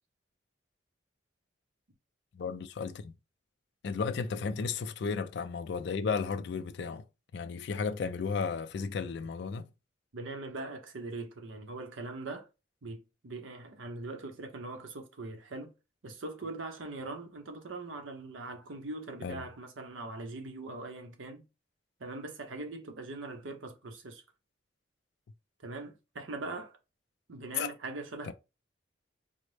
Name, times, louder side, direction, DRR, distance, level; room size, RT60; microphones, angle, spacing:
voice 1, 2.3-3.1 3.8-7.0 7.3-9.7 19.2-19.4 27.6-27.7 28.3-28.4, left 5 dB, 60° left, 0.3 m, -34 dB
voice 2, 10.1-12.4 12.8-15.7 16.0-21.4 22.0-24.2 25.6-26.8 27.3-28.3, right 2 dB, 85° right, 0.8 m, -41 dB
4.0 x 2.0 x 3.2 m
head